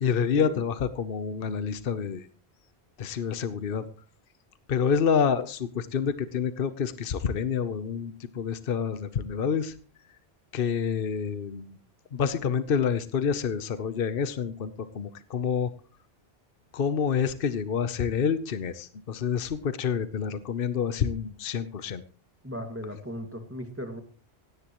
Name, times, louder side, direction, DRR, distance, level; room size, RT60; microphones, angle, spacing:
voice 1, 0.0-2.3 3.0-3.9 4.7-9.7 10.5-11.8 12.1-15.7 16.7-22.0, left 7 dB, 60° left, 12 dB, 1.0 m, -28 dB
voice 2, 22.4-24.0, equal, 10° right, 6 dB, 2.1 m, -37 dB
17.5 x 17.0 x 3.0 m, 0.39 s
omnidirectional pair, 1.1 m